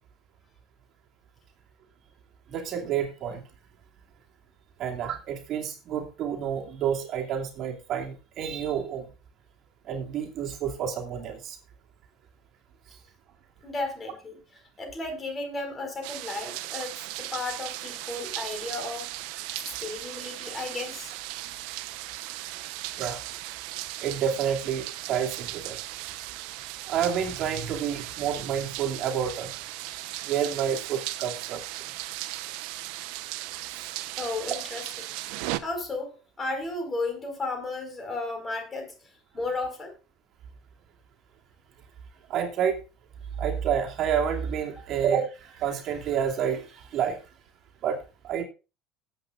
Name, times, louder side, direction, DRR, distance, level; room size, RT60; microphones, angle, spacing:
voice 1, 2.5-3.4 4.8-9.1 9.9-11.6 23.0-23.2 24.0-25.8 26.9-29.5 30.2-31.6 33.8-33.9 42.3-42.8 43.4-47.2 47.8-48.0 48.2-48.4, right 8 dB, 50° right, 2.6 m, -29 dB
voice 2, 13.6-14.4 14.8-19.1 19.8-21.1 34.2-35.1 35.6-38.9 39.3-39.9 44.8-44.9, left 2 dB, 25° left, 4.7 m, -34 dB
sound 1, 16.0-35.6, right 16 dB, 75° right, 0.8 m, -37 dB
19.5 x 7.9 x 2.5 m
supercardioid pair, 90°, 0 cm